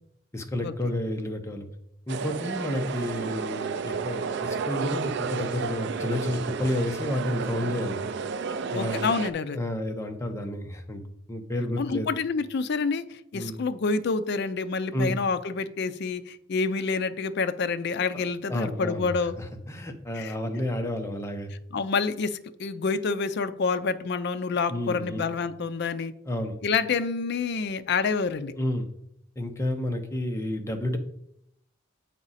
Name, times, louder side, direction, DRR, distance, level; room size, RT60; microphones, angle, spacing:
voice 1, 0.3-1.7 2.1-8.0 8.7-9.1 9.5-12.1 13.3-13.6 14.9-15.2 18.1-18.2 18.5-21.5 24.7-25.3 26.3-26.6 28.6-28.9 29.4-31.0, left 1 dB, 15° left, 4 dB, 0.7 m, -30 dB
sound 1, 2.1-9.3, right 5 dB, 55° right, 0.4 m, -32 dB
voice 2, 8.7-9.6 11.8-19.4 20.1-20.3 21.7-26.1 26.6-28.5, left 4 dB, 50° left, 11 dB, 0.4 m, -28 dB
7.4 x 4.8 x 4.1 m, 0.75 s
head